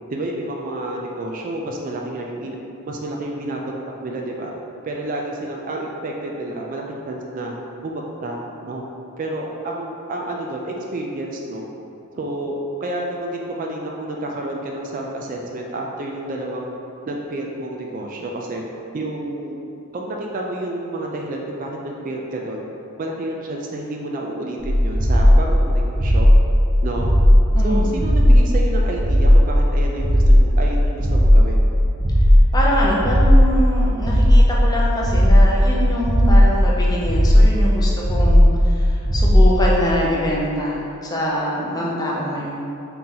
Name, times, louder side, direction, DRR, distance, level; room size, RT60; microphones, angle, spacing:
voice 1, 0.1-2.6 2.9-3.7 4.0-4.5 4.8-7.5 7.8-8.8 9.2-11.6 12.2-16.7 17.1-18.6 18.9-19.6 19.9-22.6 23.0-26.3 26.8-27.2 27.6-31.6 41.8-42.1, right 1 dB, 35° right, 0 dB, 0.3 m, -29 dB
sound 1, 24.6-39.6, equal, 70° right, 1.0 m, -15 dB
voice 2, 27.5-27.9 32.5-38.5 38.8-42.7, equal, 15° left, -5 dB, 0.5 m, -24 dB
3.7 x 2.8 x 4.0 m, 2.8 s
head